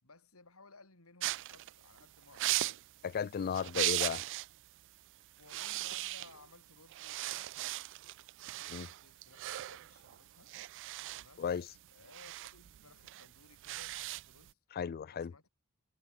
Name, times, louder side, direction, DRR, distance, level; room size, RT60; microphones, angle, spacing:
voice 1, 0.0-2.8 5.4-7.6 8.4-10.5 11.1-11.5 11.9-14.6 15.1-15.5, left 3 dB, 80° left, 4.9 m, -60 dB
sound 1, 1.2-4.6 4.9-5.1 5.4-6.6 6.9-14.5, right 17 dB, 60° right, 0.3 m, -38 dB
voice 2, 3.0-4.2 8.7-8.9 11.4-11.7 14.7-15.3, left 7 dB, 45° left, 0.3 m, -35 dB
head